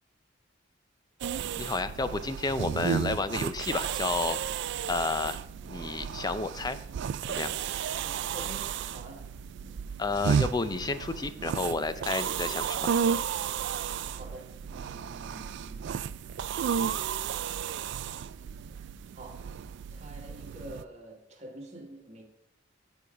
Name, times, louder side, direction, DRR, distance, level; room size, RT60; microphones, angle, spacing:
sound 1, 1.2-20.8, right 7 dB, 60° right, 0.3 m, -33 dB
voice 1, 1.6-4.4 4.9-5.4 5.6-6.8 7.3-7.5 10.0-12.9, left 3 dB, 20° left, 0.4 m, -31 dB
voice 2, 8.0-9.3 9.6-9.8 14.0-15.9 19.2-19.5 19.9-22.2, right 1 dB, 35° right, 1.6 m, -47 dB
9.4 x 4.7 x 4.9 m
head